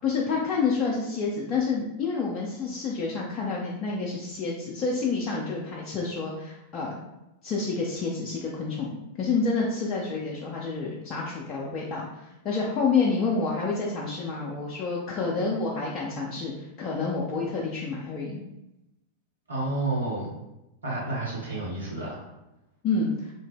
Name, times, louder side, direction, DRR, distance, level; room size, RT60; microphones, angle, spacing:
voice 1, 0.0-7.0 7.4-18.4 22.8-23.3, left 4 dB, 35° left, -4 dB, 0.4 m, -28 dB
voice 2, 19.5-20.3 20.8-22.2, right 2 dB, 75° right, -5 dB, 1.0 m, -30 dB
2.7 x 2.1 x 3.3 m, 0.93 s
figure-of-eight pair, 90°, 0 cm